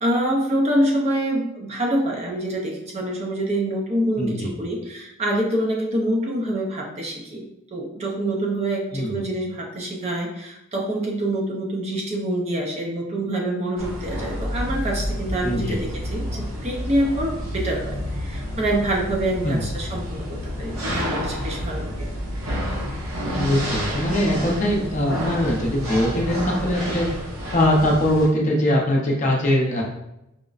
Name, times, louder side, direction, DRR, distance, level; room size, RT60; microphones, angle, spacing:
voice 1, 0.0-7.5 7.7-22.1, right 1 dB, 30° right, -1 dB, 0.5 m, -26 dB
voice 2, 4.2-4.5 8.9-9.2 15.4-15.8 19.4-19.6 23.4-27.1 27.5-29.8, left 1 dB, 35° left, -2 dB, 0.6 m, -21 dB
sound 1, 13.8-28.3, equal, 75° right, 0.9 m, -29 dB
4.8 x 2.1 x 2.4 m, 0.86 s
head